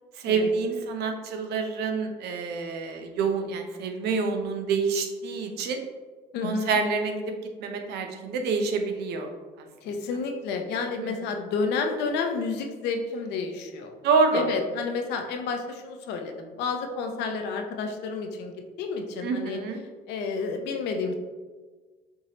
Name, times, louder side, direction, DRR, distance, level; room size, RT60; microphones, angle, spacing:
voice 1, 0.2-5.8 6.4-7.3 7.6-9.3 11.0-11.1 14.0-14.5 19.2-19.8, right 4 dB, 75° right, 5 dB, 0.6 m, -27 dB
voice 2, 6.3-6.8 9.8-13.9 14.3-19.6 20.1-21.1, left 4 dB, 85° left, 5 dB, 0.6 m, -30 dB
4.5 x 2.9 x 2.9 m, 1.4 s
cardioid pair, 110°, 17 cm